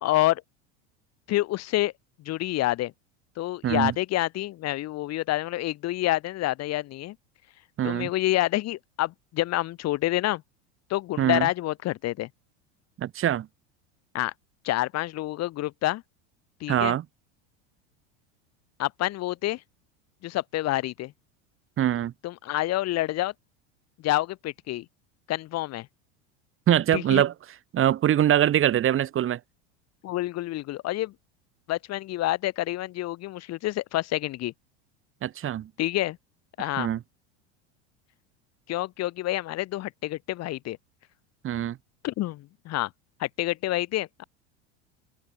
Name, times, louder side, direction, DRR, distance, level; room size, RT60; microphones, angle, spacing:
voice 1, 0.0-0.4 1.3-1.9 2.2-2.9 3.4-7.1 7.8-10.4 10.9-12.3 14.1-14.3 14.6-16.0 16.6-16.9 18.8-19.6 20.2-21.1 22.2-23.3 24.0-24.8 25.3-25.9 26.9-27.2 30.0-31.1 31.7-34.5 35.8-36.2 36.6-36.9 38.7-40.8 42.0-42.9 43.2-44.2, left 16 dB, 50° left, 3.3 m, -28 dB
voice 2, 3.6-3.9 7.8-8.1 11.2-11.5 13.0-13.5 16.7-17.0 21.8-22.1 26.7-27.3 27.7-29.4 35.2-35.7 36.6-37.0 41.4-41.8, right 11 dB, 40° right, 3.6 m, -23 dB
supercardioid pair, 105°, 34 cm